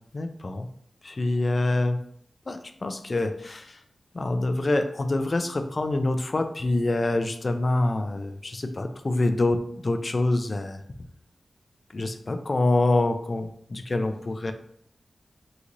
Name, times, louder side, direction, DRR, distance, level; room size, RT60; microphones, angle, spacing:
voice 1, 0.1-0.7 1.0-2.0 2.5-3.8 4.1-10.8 11.9-14.5, left 2 dB, 40° left, 8 dB, 0.3 m, -26 dB
3.8 x 3.0 x 2.5 m, 0.66 s
wide cardioid pair, 120°, 0 cm